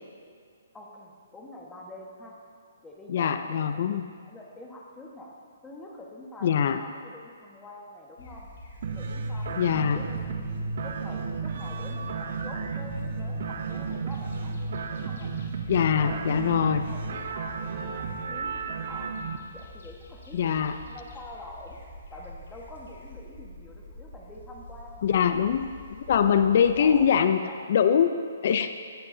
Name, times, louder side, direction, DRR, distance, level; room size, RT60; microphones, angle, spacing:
voice 1, 0.7-2.3 2.8-5.3 5.6-8.5 8.9-14.6 14.9-15.3 15.9-19.2 19.5-21.8 22.1-25.4 26.1-27.7, left 1 dB, 10° left, -2 dB, 1.3 m, -46 dB
voice 2, 3.1-4.0 6.4-6.8 9.6-10.0 15.7-16.8 20.3-20.7 25.0-25.7 25.9-27.4 27.7-28.7, left 8 dB, 55° left, 10 dB, 0.5 m, -23 dB
sound 1, 8.2-27.1, left 1 dB, 75° left, 2.2 m, -46 dB
sound 2, 8.8-19.4, right 4 dB, 60° right, 0.7 m, -33 dB
17.0 x 8.0 x 2.7 m, 2.1 s
hypercardioid pair, 145°, 0 cm